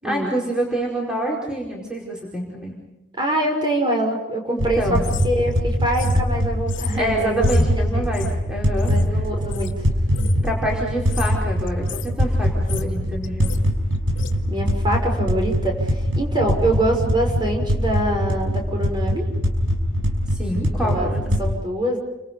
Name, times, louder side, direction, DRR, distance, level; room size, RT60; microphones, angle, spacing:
voice 1, 0.0-2.8 4.5-5.0 7.0-9.2 10.4-13.6 20.3-21.3, right 1 dB, 5° right, -3 dB, 4.7 m, -27 dB
voice 2, 3.2-5.0 5.2-7.5 7.9-8.0 8.9-9.9 14.5-19.2 20.8-21.1 21.4-22.0, right 1 dB, 25° right, 1 dB, 5.8 m, -24 dB
sound 1, 4.6-21.4, equal, 80° right, 5.7 m, -23 dB
sound 2, 5.0-9.8 10.1-10.5 11.0-11.3 11.7-12.1 12.4-13.0 13.2-13.6 14.1-14.4, left 1 dB, 75° left, 2.2 m, -27 dB
30.0 x 26.0 x 5.4 m, 0.99 s
head